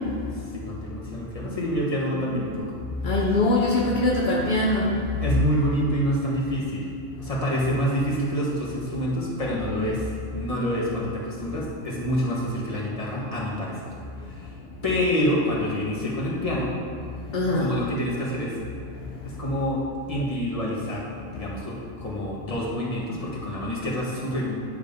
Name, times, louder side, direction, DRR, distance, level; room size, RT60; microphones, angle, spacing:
voice 1, 0.5-2.7 5.2-6.9 7.2-10.0 10.3-13.8 14.3-14.5 14.8-16.7 17.5-18.5 19.2-19.8 20.1-24.5, equal, 25° left, -5 dB, 1.3 m, -27 dB
voice 2, 2.2-2.6 3.0-5.2 17.3-17.7 21.3-21.5, left 2 dB, 50° left, -3 dB, 0.6 m, -23 dB
9.8 x 3.6 x 5.2 m, 2.4 s
omnidirectional pair, 1.5 m